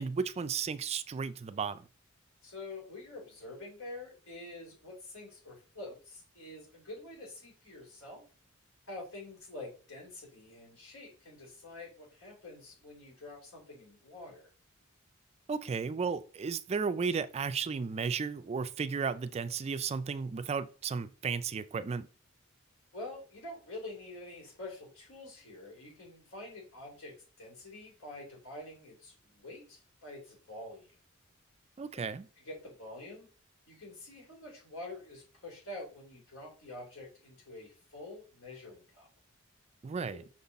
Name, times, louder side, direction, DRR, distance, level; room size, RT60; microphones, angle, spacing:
voice 1, 0.0-1.9 15.5-22.1 31.8-32.3 39.8-40.2, right 5 dB, 30° right, 0.3 m, -34 dB
voice 2, 2.4-8.2 8.9-14.5 22.9-30.9 31.9-32.0 32.4-33.3 33.7-39.1, left 2 dB, 80° left, 3.2 m, -47 dB
6.0 x 4.0 x 4.1 m
head